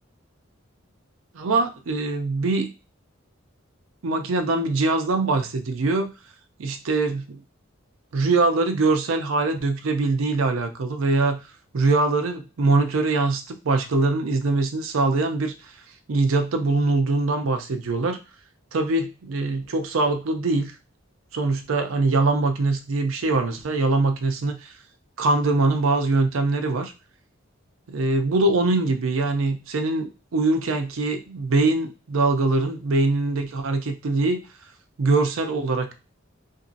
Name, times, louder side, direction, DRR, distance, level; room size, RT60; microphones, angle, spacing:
voice 1, 1.3-2.7 4.0-6.1 6.6-7.4 8.1-11.4 11.7-15.5 16.1-18.2 18.7-20.7 21.3-24.7 25.2-26.9 27.9-34.4 35.0-35.9, right 3 dB, 75° right, 7 dB, 0.5 m, -23 dB
2.9 x 2.6 x 2.5 m, 0.30 s
head